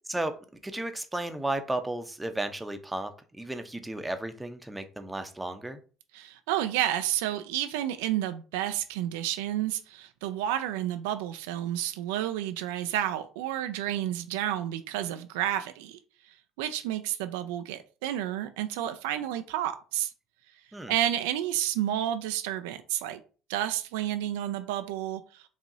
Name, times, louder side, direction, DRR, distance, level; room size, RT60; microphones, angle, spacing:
voice 1, 0.6-5.8 20.7-20.9, right 1 dB, 10° right, 8 dB, 0.7 m, -34 dB
voice 2, 6.1-16.0 16.6-20.1 20.9-23.2 23.5-25.5, right 12 dB, 75° right, 9 dB, 0.3 m, -30 dB
4.7 x 2.8 x 2.7 m, 0.37 s
hypercardioid pair, 60°, 0 cm